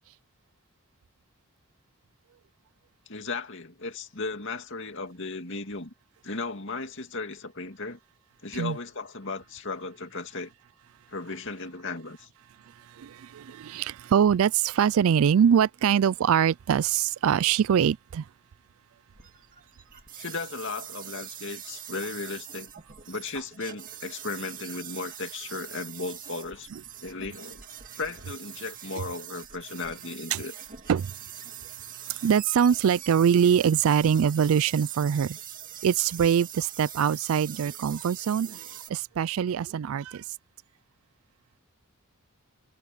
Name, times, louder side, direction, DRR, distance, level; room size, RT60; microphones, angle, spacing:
voice 1, 3.1-5.9 6.2-8.0 8.4-10.5 11.1-12.3 20.2-22.7 23.1-26.7 27.0-27.7 28.0-30.5, left 3 dB, 55° left, 2.4 m, -36 dB
voice 2, 13.0-18.2 30.3-30.4 30.9-31.1 32.2-35.4 35.8-40.2, right 8 dB, 70° right, 0.3 m, -23 dB
sound 1, 19.1-38.9, right 10 dB, 40° right, 2.1 m, -43 dB
head